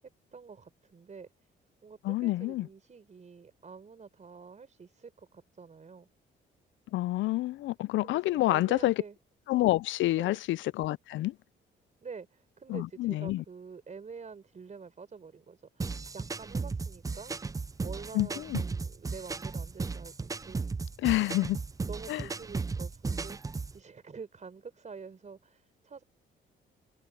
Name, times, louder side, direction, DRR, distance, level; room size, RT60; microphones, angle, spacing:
voice 1, 0.3-1.3 1.8-6.1 8.0-9.2 10.1-10.4 12.0-17.3 17.8-20.6 21.1-21.5 21.9-23.4 23.7-26.0, right 5 dB, 35° right, 4.3 m, -47 dB
voice 2, 2.0-2.7 6.9-8.9 9.5-11.4 12.7-13.4 18.1-18.6 21.0-21.6 22.1-22.2, left 17 dB, 75° left, 0.4 m, -28 dB
sound 1, 15.8-23.8, right 4 dB, 15° right, 0.5 m, -35 dB
cardioid pair, 90°, 20 cm